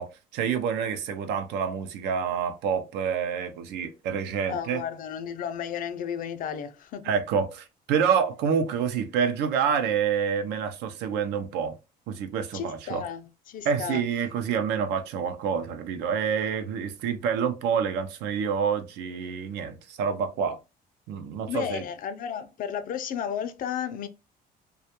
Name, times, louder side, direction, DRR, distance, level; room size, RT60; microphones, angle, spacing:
voice 1, 0.0-4.8 7.0-11.7 12.1-13.0 13.6-20.6 21.1-21.8, right 7 dB, 85° right, 0.5 m, -27 dB
voice 2, 4.5-7.1 12.5-14.0 21.5-24.1, left 8 dB, 55° left, 0.4 m, -33 dB
2.3 x 2.1 x 2.8 m
cardioid pair, 110°, 17 cm